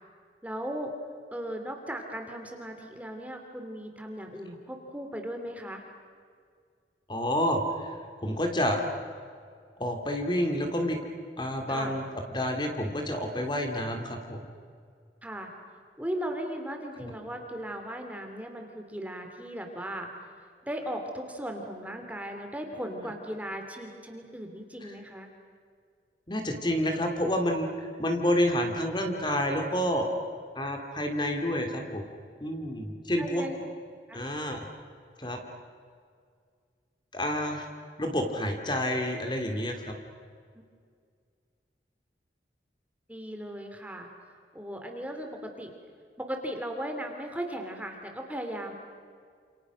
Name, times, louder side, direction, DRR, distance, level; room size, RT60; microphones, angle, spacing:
voice 1, 0.4-0.9 1.3-5.8 11.7-11.9 15.2-20.1 20.7-25.3 33.2-33.6 34.1-34.2 40.5-40.6 43.1-45.7 46.2-48.7, equal, 10° right, 3 dB, 3.1 m, -37 dB
voice 2, 7.1-8.8 9.8-11.0 11.4-14.4 17.0-17.1 24.8-25.0 26.3-30.1 30.5-32.0 32.4-33.4 34.1-34.7 35.2-35.4 37.1-37.7 38.0-39.9, equal, 25° left, 3 dB, 3.0 m, -29 dB
28.5 x 28.5 x 6.5 m, 2.1 s
head